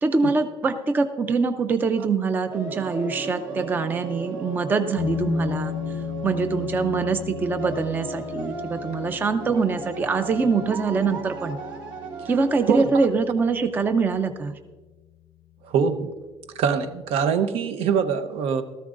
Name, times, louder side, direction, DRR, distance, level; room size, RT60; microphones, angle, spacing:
voice 1, 0.0-5.7 6.2-11.6 12.3-14.6, right 4 dB, 20° right, 8 dB, 0.5 m, -24 dB
sound 1, 2.5-12.7, right 3 dB, 55° right, 3.4 m, -36 dB
sound 2, 4.9-14.0, left 10 dB, 75° left, 0.6 m, -35 dB
voice 2, 15.6-16.1 16.5-18.6, right 6 dB, 70° right, 9 dB, 0.8 m, -23 dB
17.0 x 13.5 x 2.5 m, 1.3 s
cardioid pair, 180°, 10 cm